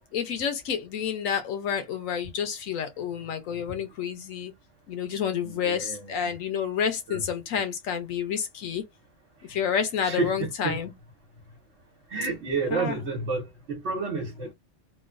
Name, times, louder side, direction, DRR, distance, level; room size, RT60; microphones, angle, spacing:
voice 1, 0.1-4.5 4.9-8.8 9.5-10.9 12.7-13.0, left 7 dB, 90° left, 1.1 m, -29 dB
voice 2, 5.4-6.1 7.1-7.2 7.5-7.6 10.0-10.8 12.1-14.5, right 4 dB, 60° right, 1.2 m, -30 dB
3.1 x 2.2 x 2.4 m
omnidirectional pair, 1.3 m